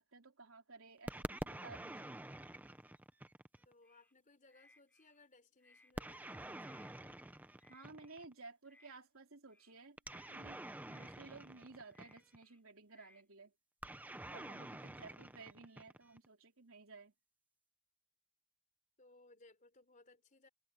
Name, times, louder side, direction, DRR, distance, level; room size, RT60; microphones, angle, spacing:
voice 1, 0.0-2.2 7.7-13.5 14.3-17.1, right 3 dB, 75° right, 3.4 m, -56 dB
sound 1, 1.1-3.7 6.0-8.3 10.0-12.4 13.8-16.3, right 1 dB, 10° right, 0.6 m, -48 dB
voice 2, 3.6-7.2 14.9-15.2 19.0-20.5, left 2 dB, 35° left, 4.3 m, -65 dB
sound 2, 3.8-4.1 4.5-5.2 5.6-6.3 6.6-6.9 7.6-8.3 8.6-9.0 9.5-9.8 10.1-10.4 10.9-11.5 11.9-12.6 12.9-13.2, left 2 dB, 10° left, 5.5 m, -68 dB
head